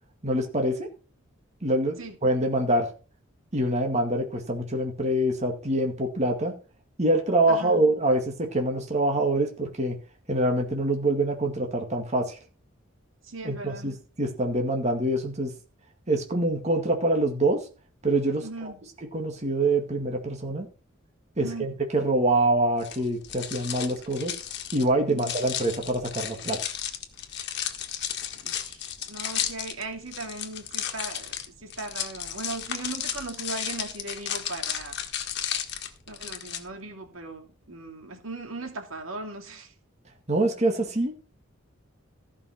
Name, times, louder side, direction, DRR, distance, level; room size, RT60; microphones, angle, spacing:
voice 1, 0.2-0.9 1.6-2.9 3.5-6.5 7.0-10.0 10.3-12.4 13.4-15.5 16.1-17.6 18.0-18.7 19.1-20.7 21.4-24.3 24.7-26.6 40.3-41.1, right 1 dB, 35° right, 3 dB, 2.0 m, -25 dB
voice 2, 13.2-13.9 18.4-18.8 21.4-21.7 25.1-25.3 28.4-31.4 31.6-35.0 36.1-39.7, right 3 dB, 75° right, 4 dB, 2.7 m, -38 dB
sound 1, 22.8-36.6, left 9 dB, 55° left, 1.6 m, -34 dB
14.5 x 5.6 x 5.8 m, 0.36 s
head